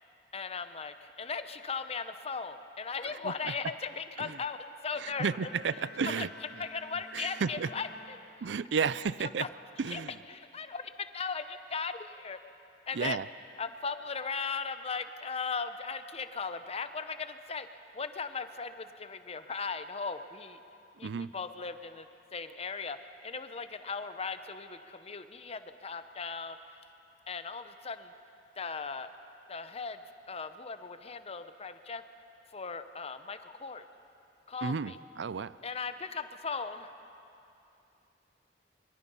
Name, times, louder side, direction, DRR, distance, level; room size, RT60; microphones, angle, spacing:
voice 1, 0.3-5.5 5.8-6.3 6.6-8.2 9.4-9.5 9.9-10.0 10.3-12.4 12.9-13.2 13.6-17.7 17.9-20.6 21.0-22.1 22.3-23.0 23.2-26.6 27.3-28.1 28.6-29.1 29.5-30.0 30.3-32.0 32.5-33.8 34.5-35.0 35.6-36.9, left 5 dB, 35° left, 10 dB, 0.8 m, -38 dB
sound 1, 4.9-8.8, left 3 dB, 90° left, 3.8 m, -51 dB
voice 2, 5.0-6.3 7.1-7.7 8.4-9.5 9.8-10.1 12.9-13.3 21.0-21.3 34.6-35.5, right 6 dB, 75° right, 17 dB, 0.5 m, -32 dB
24.0 x 23.0 x 5.6 m, 2.7 s
head